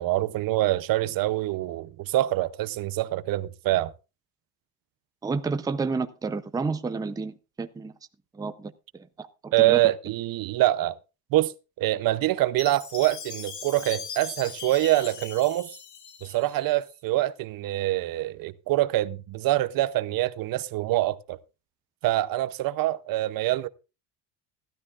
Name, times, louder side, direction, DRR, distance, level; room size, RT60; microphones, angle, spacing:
voice 1, 0.0-3.9 9.5-11.0 11.3-15.7 16.2-21.4 22.0-23.7, right 16 dB, 55° right, 0.7 m, -25 dB
voice 2, 5.2-7.9 8.3-9.8, right 4 dB, 10° right, 0.6 m, -31 dB
Chime, 12.6-16.7, left 7 dB, 45° left, 1.7 m, -40 dB
16.0 x 12.0 x 2.4 m
cardioid pair, 140°, 41 cm